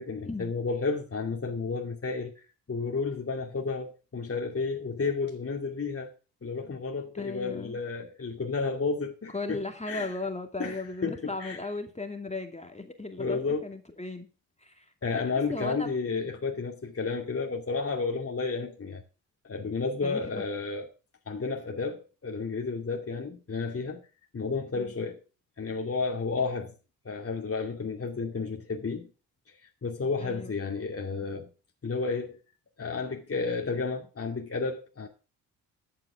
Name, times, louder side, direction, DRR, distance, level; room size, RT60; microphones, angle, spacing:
voice 1, 0.0-6.1 6.4-9.6 9.9-10.1 10.6-11.6 13.2-13.6 15.0-19.0 19.4-20.9 21.3-24.0 24.3-25.2 25.6-26.7 27.0-29.1 29.5-29.6 29.8-31.5 31.8-32.4 32.8-35.1, left 4 dB, 30° left, 2.5 m, -32 dB
voice 2, 7.1-7.8 9.3-14.3 14.6-15.9 20.0-20.4 24.7-24.9 30.2-30.6, left 3 dB, 15° left, 2.6 m, -37 dB
14.0 x 9.1 x 3.6 m
hypercardioid pair, 45°, 43 cm